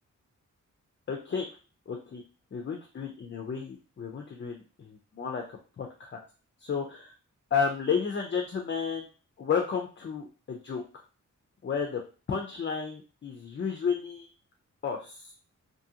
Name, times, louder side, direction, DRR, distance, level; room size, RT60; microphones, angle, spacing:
voice 1, 1.1-1.5 1.9-2.2 2.5-6.2 6.6-7.1 7.5-9.1 9.4-11.0 11.6-12.0 12.3-14.3 14.8-15.3, left 6 dB, 40° left, 2 dB, 0.4 m, -32 dB
2.6 x 2.5 x 2.7 m, 0.35 s
wide cardioid pair, 150°, 31 cm